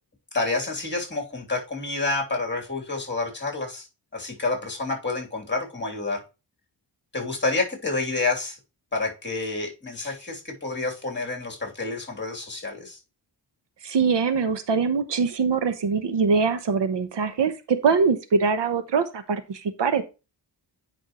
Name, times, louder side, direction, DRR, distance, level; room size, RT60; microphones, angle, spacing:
voice 1, 0.3-3.9 4.1-6.2 7.1-8.6 8.9-13.0, left 3 dB, 25° left, 0 dB, 3.0 m, -29 dB
voice 2, 13.8-20.0, right 5 dB, 70° right, 10 dB, 0.9 m, -23 dB
9.7 x 5.4 x 3.0 m, 0.29 s
wide cardioid pair, 105°, 44 cm